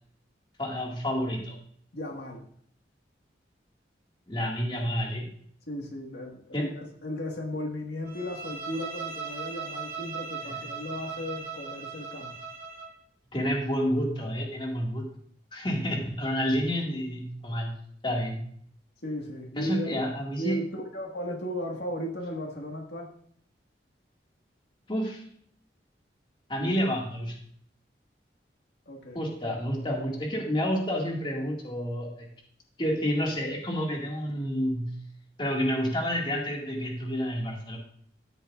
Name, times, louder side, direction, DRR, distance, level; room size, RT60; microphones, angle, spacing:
voice 1, 0.6-1.6 4.3-5.3 6.5-6.7 13.3-15.1 15.5-17.7 18.0-18.4 19.6-20.6 24.9-25.2 26.5-27.4 29.1-32.3 32.8-35.0 35.4-37.8, equal, 30° left, -1 dB, 2.1 m, -29 dB
voice 2, 1.9-2.4 5.7-12.3 19.0-20.0 20.4-23.1 28.9-30.0, equal, 70° left, 1 dB, 1.8 m, -36 dB
Bowed string instrument, 8.1-13.0, right 5 dB, 55° right, 2.0 m, -38 dB
12.5 x 9.9 x 2.5 m, 0.62 s
head